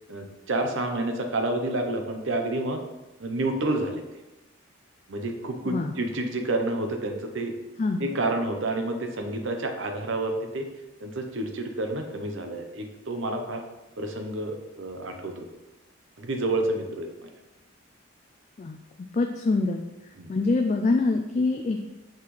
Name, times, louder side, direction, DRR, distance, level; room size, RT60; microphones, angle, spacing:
voice 1, 0.1-2.8 3.2-4.0 5.1-7.5 8.0-10.7 11.0-13.6 14.0-15.4 16.2-17.3 20.2-20.3, right 2 dB, 65° right, 4 dB, 0.8 m, -29 dB
voice 2, 19.1-19.8 20.3-21.8, left 3 dB, 35° left, 4 dB, 0.3 m, -24 dB
5.9 x 5.9 x 3.2 m, 1.0 s
head